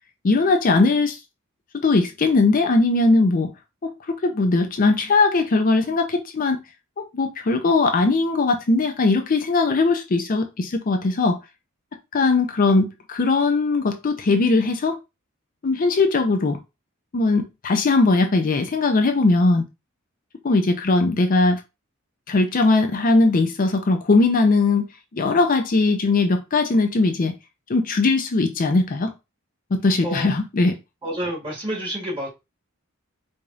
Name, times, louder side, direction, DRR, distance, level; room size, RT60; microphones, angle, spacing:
voice 1, 0.2-1.2 1.8-3.5 3.8-6.6 7.0-11.4 12.1-15.0 15.6-16.6 17.1-19.6 20.4-21.6 22.3-24.9 25.1-27.3 27.7-29.1 29.8-30.8, left 3 dB, 40° left, 0.5 m, -19 dB
voice 2, 31.0-32.3, right 1 dB, 25° right, 1.8 m, -29 dB
4.8 x 2.6 x 2.3 m
head